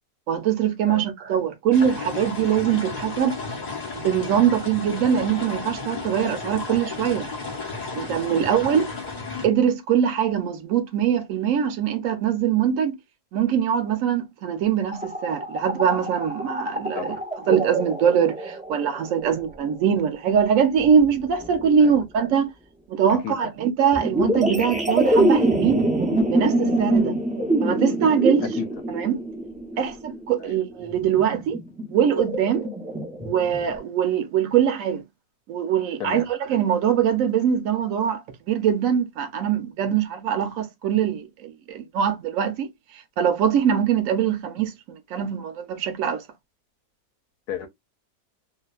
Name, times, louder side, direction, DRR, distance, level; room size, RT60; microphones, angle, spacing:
voice 1, 0.3-3.4 3.9-7.3 7.9-9.0 9.4-13.0 13.3-17.2 17.5-22.5 22.9-25.9 26.3-27.1 27.6-28.5 28.9-29.2 29.8-31.6 31.9-32.7 33.2-35.0 35.5-46.2, right 8 dB, 65° right, 1.0 m, -22 dB
voice 2, 0.9-1.0 8.3-8.4 8.7-8.8 16.9-17.2 21.8-21.9 23.1-23.3 26.9-27.0 28.6-28.7 29.7-29.9 30.4-30.5 36.0-36.3 47.5-47.7, left 8 dB, 80° left, 1.1 m, -33 dB
sound 1, 1.7-9.5, left 4 dB, 45° left, 0.5 m, -33 dB
sound 2, 14.9-19.4 20.8-22.0 23.9-33.8, right 1 dB, 10° right, 0.3 m, -25 dB
2.8 x 2.2 x 2.3 m
omnidirectional pair, 1.7 m